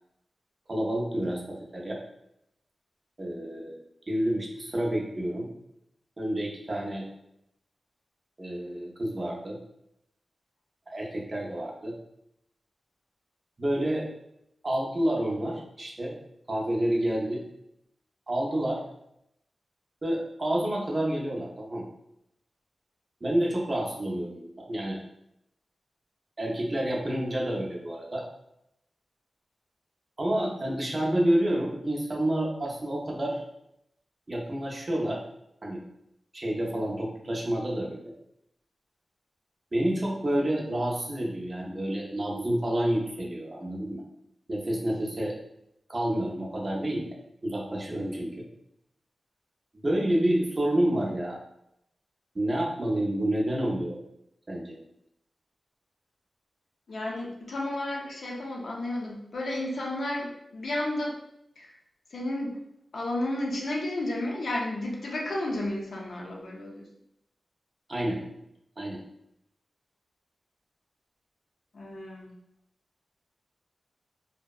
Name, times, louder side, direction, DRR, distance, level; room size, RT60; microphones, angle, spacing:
voice 1, 0.7-2.0 3.2-3.7 4.1-5.5 6.2-7.1 8.4-9.6 10.9-11.9 13.6-14.1 14.6-16.2 16.5-17.4 18.3-18.8 20.0-21.9 23.2-25.0 26.4-28.3 30.2-33.4 34.3-35.2 35.6-35.8 36.3-38.0 39.7-44.0 44.5-45.3 45.9-47.1 47.4-48.4 49.7-51.4 52.3-54.0 54.5-54.8 67.9-68.2 68.8-69.0, right 1 dB, 35° right, -2 dB, 0.5 m, -29 dB
voice 2, 56.9-61.2 61.6-61.7 62.1-62.6 62.9-66.8 71.7-72.3, left 1 dB, 70° left, -2 dB, 0.5 m, -32 dB
2.6 x 2.0 x 2.3 m, 0.79 s
wide cardioid pair, 115°, 0 cm